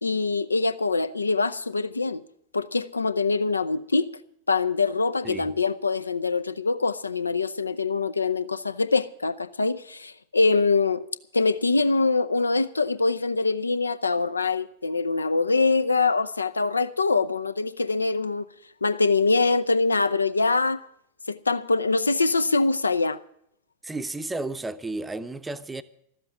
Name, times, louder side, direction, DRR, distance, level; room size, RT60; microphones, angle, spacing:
voice 1, 0.0-2.2 2.5-4.1 4.5-11.0 11.3-18.5 18.8-20.8 21.3-23.2, left 3 dB, 80° left, 0.5 m, -24 dB
voice 2, 23.8-25.8, right 2 dB, 10° right, 0.7 m, -32 dB
13.0 x 7.8 x 9.6 m
figure-of-eight pair, 90°, 0 cm